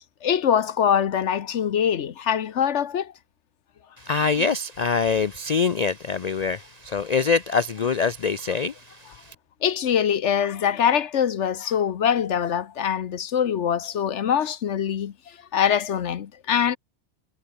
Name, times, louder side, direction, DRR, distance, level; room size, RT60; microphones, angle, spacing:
voice 1, 0.2-3.1 9.6-16.8, left 8 dB, 70° left, 1.2 m, -23 dB
voice 2, 4.0-9.3, left 5 dB, 45° left, 0.6 m, -24 dB
omnidirectional pair, 1.3 m